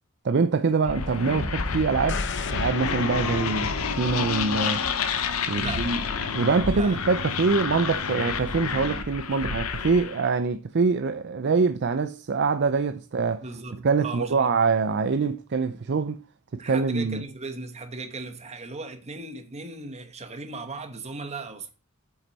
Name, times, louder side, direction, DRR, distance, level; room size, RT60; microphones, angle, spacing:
voice 1, 0.2-4.9 5.5-13.4 13.8-16.2 16.5-17.2, right 4 dB, 55° right, 0.5 m, -24 dB
sound 1, 0.9-10.3, left 5 dB, 90° left, 0.9 m, -29 dB
sound 2, 2.1-6.1 6.4-6.5, left 6 dB, 60° left, 0.8 m, -37 dB
voice 2, 5.6-5.9 6.7-7.0 13.4-14.5 16.6-21.7, right 3 dB, 30° right, 1.2 m, -37 dB
8.1 x 7.8 x 4.2 m
head